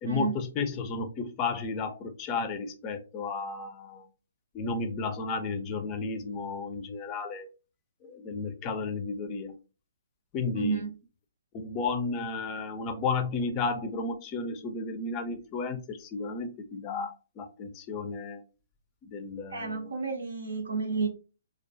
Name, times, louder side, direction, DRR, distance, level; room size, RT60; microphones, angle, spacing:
voice 1, 0.0-4.1 4.5-7.5 8.0-9.5 10.3-10.8 11.5-18.4 19.1-19.9, left 4 dB, 25° left, 0.4 m, -33 dB
voice 2, 10.5-10.9 12.8-12.9 19.5-21.1, right 4 dB, 75° right, 0.5 m, -31 dB
2.3 x 2.2 x 2.5 m
figure-of-eight pair, 130°, 0 cm